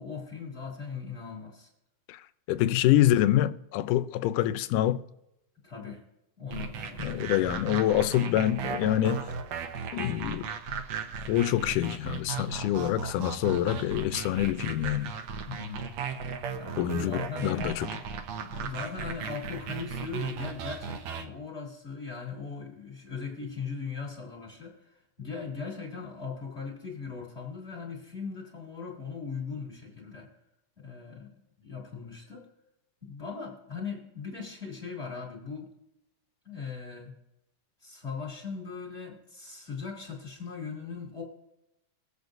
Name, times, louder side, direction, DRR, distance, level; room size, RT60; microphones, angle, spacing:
voice 1, 0.0-1.7 2.6-2.7 5.6-6.0 6.4-8.0 15.5-15.9 16.5-17.7 18.4-30.3 30.8-32.4 33.0-35.7 36.4-37.1 37.8-41.2, left 5 dB, 20° left, 2.5 m, -39 dB
voice 2, 2.5-5.0 7.0-9.2 9.9-10.5 11.3-15.1 16.8-17.9, left 13 dB, 80° left, 2.1 m, -26 dB
sound 1, 6.5-21.3, right 6 dB, 65° right, 1.9 m, -36 dB
23.0 x 8.1 x 2.6 m
omnidirectional pair, 3.7 m